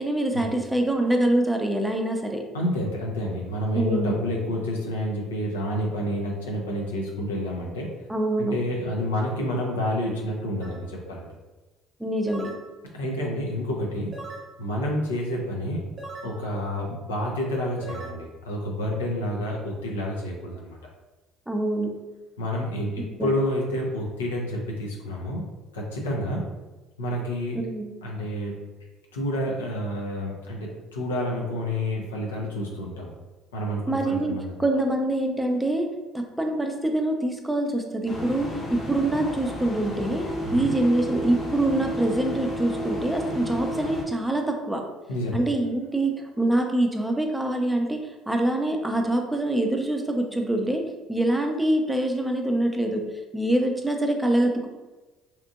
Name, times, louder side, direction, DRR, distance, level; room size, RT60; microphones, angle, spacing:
voice 1, 0.0-2.4 3.7-4.1 8.1-8.6 12.0-12.5 21.5-21.9 23.0-23.3 27.5-27.9 33.9-35.9 36.1-40.3 40.5-44.8 45.3-50.8 51.1-53.0 53.3-54.7, right 1 dB, 5° right, 3 dB, 0.5 m, -25 dB
voice 2, 2.5-7.9 8.4-11.3 12.9-14.1 14.6-15.8 16.2-20.8 22.4-25.4 25.7-26.4 27.0-27.6 28.0-28.7 29.1-33.1 33.5-34.5 40.4-40.7 45.1-45.4, left 1 dB, 90° left, -2 dB, 0.5 m, -29 dB
sound 1, 10.6-10.8 12.3-12.6 14.1-14.5 16.0-16.3 17.8-18.1, right 2 dB, 45° right, 0.7 m, -39 dB
sound 2, 38.1-44.0, equal, 35° left, 0.8 m, -32 dB
2.8 x 2.5 x 2.4 m, 1.2 s
hypercardioid pair, 60°, 0 cm